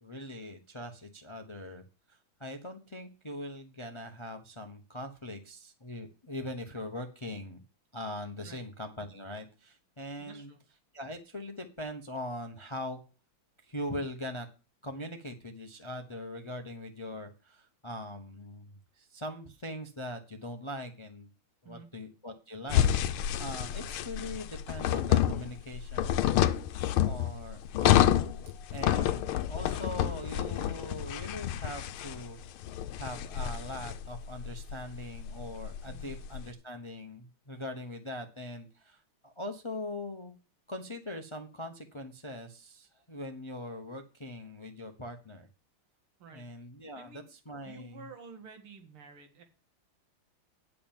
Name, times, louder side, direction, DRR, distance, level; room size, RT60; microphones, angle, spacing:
voice 1, 0.0-7.6 7.9-10.5 10.9-13.0 13.6-14.5 14.8-18.7 19.0-21.3 21.6-26.3 27.0-28.3 28.7-32.4 33.0-40.4 40.7-45.5 46.3-48.0, left 1 dB, 45° left, 6 dB, 0.3 m, -41 dB
voice 2, 10.2-10.6 21.7-21.9 35.8-36.2 46.2-46.5 47.0-47.3 47.7-49.4, right 4 dB, 90° right, 4 dB, 2.5 m, -50 dB
sound 1, 22.7-36.4, left 11 dB, 80° left, 1.5 m, -29 dB
8.9 x 5.0 x 7.2 m, 0.32 s
omnidirectional pair, 2.3 m